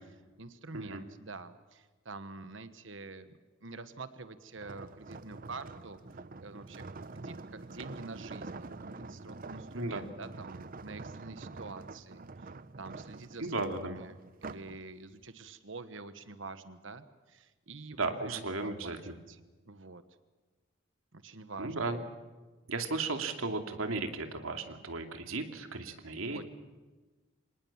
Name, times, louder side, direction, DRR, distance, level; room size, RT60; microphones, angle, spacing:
voice 1, 0.4-3.3 3.6-6.0 6.4-12.5 12.8-18.9 19.3-19.4 19.6-20.0 21.1-21.9 26.3-26.4, right 3 dB, 65° right, 11 dB, 1.3 m, -47 dB
sound 1, 4.6-14.8 15.2-15.5, right 3 dB, 45° right, 0.7 m, -46 dB
voice 2, 13.4-13.9 18.0-19.1 21.6-22.0 22.7-26.4, right 3 dB, 85° right, 6 dB, 2.7 m, -35 dB
26.0 x 19.0 x 7.3 m, 1.3 s
head